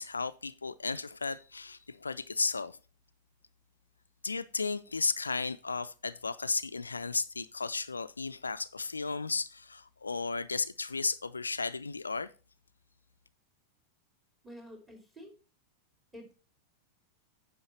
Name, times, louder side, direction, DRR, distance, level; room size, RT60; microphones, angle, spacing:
voice 1, 0.0-2.8 4.2-12.3, left 4 dB, 75° left, 0.3 m, -34 dB
voice 2, 14.4-15.3 16.1-16.4, equal, 10° right, 3.1 m, -49 dB
9.3 x 5.7 x 4.3 m
figure-of-eight pair, 90°, 0 cm